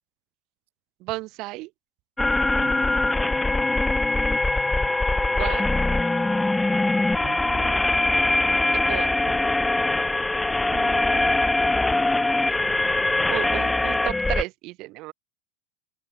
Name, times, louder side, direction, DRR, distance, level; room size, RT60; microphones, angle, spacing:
voice 1, 1.0-1.7 5.3-5.7 8.9-9.4 13.3-15.1, right 21 dB, 40° right, 2.1 m, -33 dB
sound 1, 2.2-14.4, left 2 dB, 5° left, 0.3 m, -22 dB
voice 2, 2.6-3.1 7.2-7.8 10.7-11.5 12.6-13.6, right 18 dB, 70° right, 2.9 m, -44 dB
supercardioid pair, 160°, 0 cm